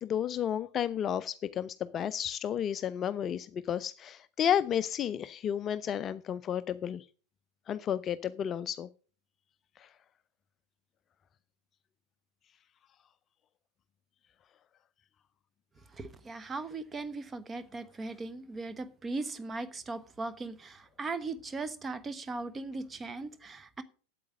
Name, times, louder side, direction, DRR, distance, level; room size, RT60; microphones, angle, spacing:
voice 1, 0.0-7.0 7.7-8.9 9.8-9.9, left 9 dB, 25° left, 0.5 m, -32 dB
voice 2, 15.9-23.8, right 3 dB, 15° right, 1.2 m, -38 dB
8.6 x 8.4 x 7.4 m
figure-of-eight pair, 90°, 0 cm